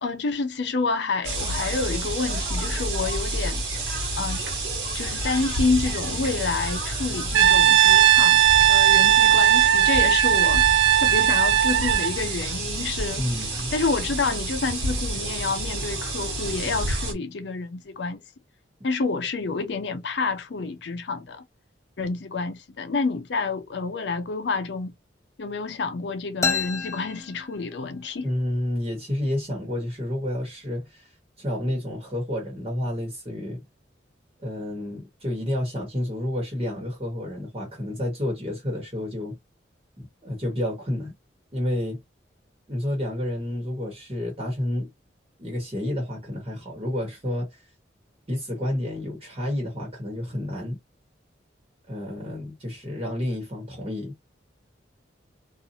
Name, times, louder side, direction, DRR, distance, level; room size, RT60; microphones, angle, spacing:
voice 1, 0.0-3.6 4.1-4.4 4.9-8.4 8.7-10.6 11.0-13.3 13.7-18.2 18.8-21.4 22.0-24.9 25.4-28.3, left 4 dB, 70° left, 0.5 m, -28 dB
sound 1, 1.2-17.1, right 2 dB, 65° right, 1.2 m, -29 dB
Brass instrument, 7.3-12.2, right 11 dB, 85° right, 0.4 m, -17 dB
voice 2, 13.2-13.7 28.2-31.1 31.4-33.6 34.4-39.4 40.0-41.1 41.5-42.0 42.7-44.9 45.4-47.6 48.3-50.8 51.9-54.1, left 1 dB, 30° right, 1.2 m, -30 dB
sound 2, 26.4-28.1, left 5 dB, 15° left, 0.3 m, -29 dB
2.6 x 2.4 x 2.7 m
head